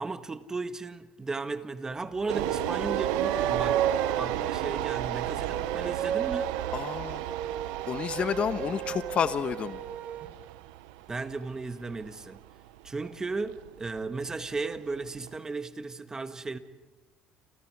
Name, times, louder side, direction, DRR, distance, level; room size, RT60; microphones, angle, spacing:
voice 1, 0.0-6.5 11.1-12.4 12.8-16.6, right 3 dB, 20° right, 1.6 m, -35 dB
sound 1, 2.2-10.3, right 9 dB, 55° right, 1.7 m, -33 dB
sound 2, 2.3-15.4, right 15 dB, 90° right, 0.8 m, -34 dB
voice 2, 6.7-7.2 7.9-9.8, left 7 dB, 45° left, 1.2 m, -30 dB
29.5 x 27.0 x 4.9 m
supercardioid pair, 90°, 3 cm